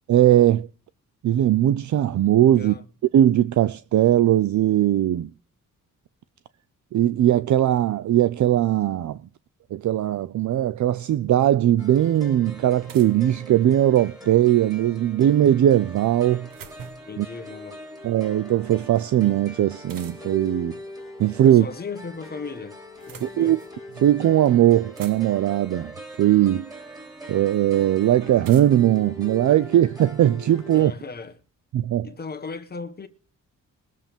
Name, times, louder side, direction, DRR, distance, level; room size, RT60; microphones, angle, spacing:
voice 1, 0.1-0.7 1.2-2.7 3.1-5.3 6.9-9.2 9.7-16.5 17.2-17.3 18.0-20.8 21.2-21.7 23.2-23.6 24.0-25.9 26.2-26.7 27.3-30.9 31.7-32.1, right 12 dB, 60° right, 0.5 m, -19 dB
voice 2, 2.5-2.8 17.1-17.9 21.4-22.8 23.1-23.6 30.7-31.4 32.0-33.1, left 4 dB, 30° left, 1.2 m, -36 dB
sound 1, 11.8-30.8, equal, 10° right, 3.3 m, -42 dB
sound 2, 12.9-14.0 16.0-17.2 19.9-20.5 21.6-22.2 22.8-23.8 24.4-24.5 24.7-25.6 26.7-26.8 28.4-30.0, right 7 dB, 85° right, 1.5 m, -46 dB
22.0 x 7.5 x 3.6 m
wide cardioid pair, 175°, 33 cm